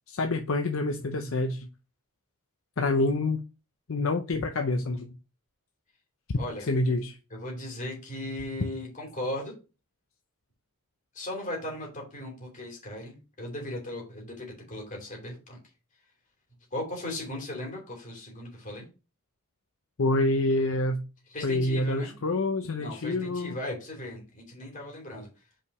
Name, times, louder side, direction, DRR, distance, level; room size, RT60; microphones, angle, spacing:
voice 1, 0.1-1.7 2.8-3.4 3.9-5.1 6.7-7.2 20.0-21.0 21.4-23.6, left 2 dB, 60° left, 0.6 m, -27 dB
voice 2, 6.3-7.0 7.3-9.5 11.1-15.6 16.7-18.9 21.3-22.1 22.8-25.3, left 1 dB, 35° left, 3.0 m, -37 dB
5.6 x 5.0 x 4.8 m
head